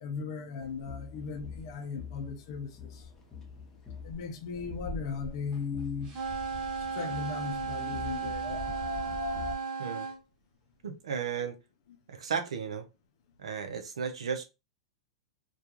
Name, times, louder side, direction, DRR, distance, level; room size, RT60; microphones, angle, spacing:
voice 1, 0.0-2.7 4.0-6.1 6.9-8.6, left 5 dB, 60° left, 0.5 m, -37 dB
sound 1, 0.6-9.5, left 3 dB, 20° left, 0.8 m, -42 dB
sound 2, 6.0-10.2, right 5 dB, 35° right, 1.0 m, -35 dB
voice 2, 10.8-11.6 12.1-12.8 13.4-14.4, right 6 dB, 85° right, 0.5 m, -34 dB
2.3 x 2.3 x 2.8 m
hypercardioid pair, 120°, 3 cm